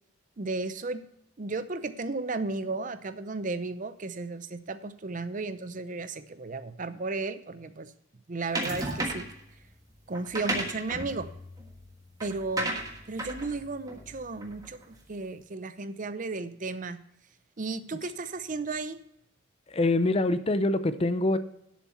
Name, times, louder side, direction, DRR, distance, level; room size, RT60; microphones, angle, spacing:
voice 1, 0.4-1.0 1.4-7.9 8.3-9.3 10.1-11.3 12.2-12.7 13.1-17.0 17.6-19.0, right 3 dB, 40° right, 12 dB, 0.6 m, -34 dB
sound 1, 8.5-9.4 10.1-14.8, right 1 dB, 20° right, 1.4 m, -34 dB
voice 2, 19.7-21.4, left 2 dB, 30° left, 12 dB, 0.5 m, -25 dB
11.5 x 7.3 x 4.2 m, 0.79 s
head